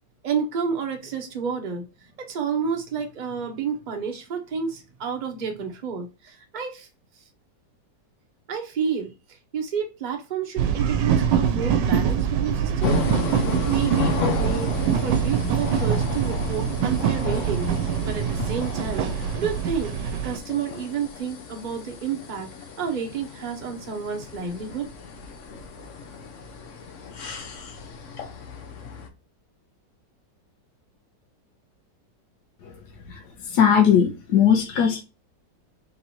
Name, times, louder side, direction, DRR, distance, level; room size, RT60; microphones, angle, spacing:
voice 1, 0.2-1.8 2.3-6.9 8.5-9.1 9.5-13.0 13.7-14.7 15.0-17.7 18.0-22.5 22.8-24.9, right 6 dB, 40° right, 0.7 m, -30 dB
sound 1, 10.6-20.4, right 8 dB, 75° right, 1.2 m, -24 dB
sound 2, 12.8-29.1, left 5 dB, 55° left, 0.9 m, -33 dB
voice 2, 33.5-35.0, left 8 dB, 70° left, 1.4 m, -18 dB
3.9 x 3.0 x 4.2 m
omnidirectional pair, 2.0 m